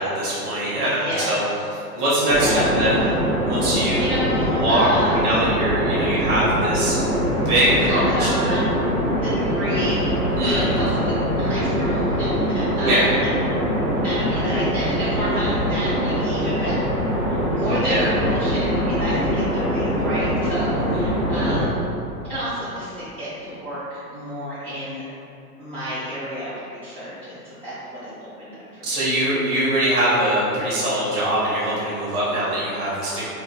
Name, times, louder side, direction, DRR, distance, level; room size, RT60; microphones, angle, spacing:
voice 1, 0.0-1.4 1.9-3.0 3.5-4.1 4.6-6.9 7.4-8.5 10.4-10.7 12.8-13.0 17.8-18.1 20.9-21.0 28.8-33.3, right 1 dB, 70° right, -9 dB, 1.5 m, -22 dB
voice 2, 0.7-1.4 2.3-3.2 4.0-5.2 7.8-8.7 9.2-13.1 13.9-16.9 17.3-21.8 22.2-25.0 25.6-28.9, equal, 15° right, -15 dB, 0.7 m, -30 dB
sound 1, 2.3-21.7, equal, 10° left, 0.4 m, -23 dB
4.1 x 2.2 x 2.9 m, 2.7 s
hypercardioid pair, 115°, 47 cm